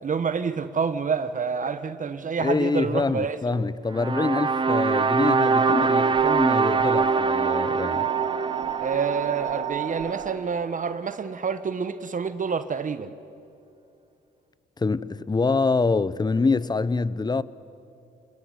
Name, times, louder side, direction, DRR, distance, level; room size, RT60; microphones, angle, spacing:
voice 1, 0.0-3.7 8.8-13.1, right 6 dB, 45° right, 1.2 m, -28 dB
voice 2, 2.4-8.1 14.8-17.4, left 3 dB, 20° left, 0.9 m, -25 dB
sound 1, 3.9-10.2, right 4 dB, 25° right, 0.9 m, -24 dB
sound 2, 5.3-10.3, right 11 dB, 80° right, 2.5 m, -31 dB
28.5 x 20.0 x 9.8 m
supercardioid pair, 70°, 19 cm